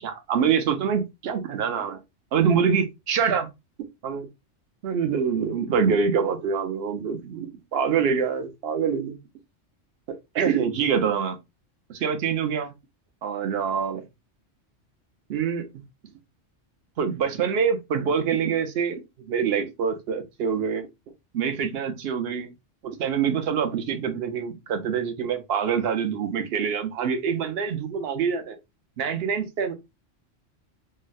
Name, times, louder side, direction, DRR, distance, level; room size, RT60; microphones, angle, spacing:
voice 1, 0.0-2.0 2.3-3.5 4.0-4.3 4.8-9.2 10.1-11.4 11.9-12.7 13.2-14.0 15.3-15.7 17.0-19.0 19.3-20.9 21.3-22.5 22.8-28.6 29.0-29.7, right 6 dB, 60° right, 0.9 m, -25 dB
3.8 x 2.1 x 2.5 m
omnidirectional pair, 1.3 m